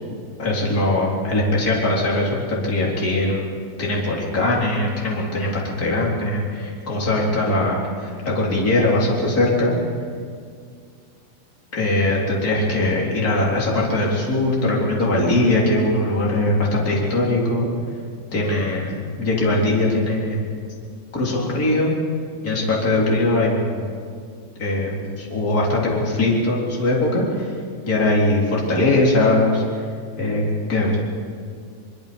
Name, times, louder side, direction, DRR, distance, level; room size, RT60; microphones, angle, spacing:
voice 1, 0.4-3.5 3.8-9.7 11.7-17.7 18.3-20.6 21.1-21.9 22.4-23.9 24.6-27.5 27.9-29.6 30.2-30.4 30.7-31.0, left 2 dB, 20° left, -4 dB, 3.6 m, -21 dB
24.0 x 23.0 x 5.3 m, 2.2 s
omnidirectional pair, 5.6 m